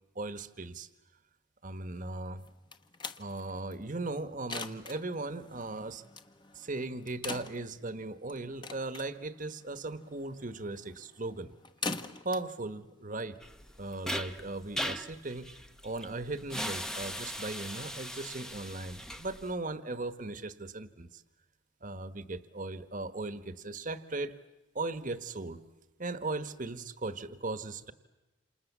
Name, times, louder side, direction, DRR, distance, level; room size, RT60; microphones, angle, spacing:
voice 1, 0.1-0.9 1.6-2.4 3.2-6.0 6.5-11.5 12.2-13.4 13.8-15.5 15.8-21.2 21.8-24.3 24.7-25.6 26.0-27.9, right 2 dB, 40° right, 12 dB, 1.3 m, -38 dB
sound 1, 2.4-13.8, left 4 dB, 25° left, 1.1 m, -44 dB
sound 2, 13.4-19.5, equal, 5° left, 0.9 m, -39 dB
28.5 x 28.0 x 7.4 m, 1.0 s
head